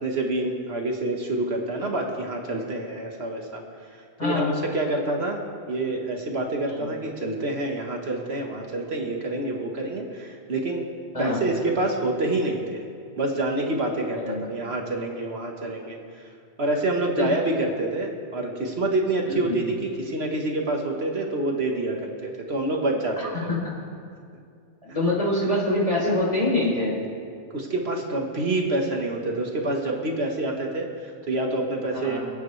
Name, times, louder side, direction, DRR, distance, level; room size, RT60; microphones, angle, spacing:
voice 1, 0.0-3.6 3.9-5.4 5.7-10.8 11.2-12.8 13.2-16.3 16.6-23.5 27.5-32.2, right 2 dB, 60° right, 1 dB, 1.6 m, -27 dB
voice 2, 4.2-4.6 6.7-6.9 11.1-11.4 14.1-14.5 17.1-17.3 19.2-19.6 23.2-23.7 24.8-27.0 31.9-32.2, left 2 dB, 30° left, -4 dB, 3.7 m, -25 dB
27.5 x 9.2 x 3.2 m, 2.3 s
omnidirectional pair, 1.2 m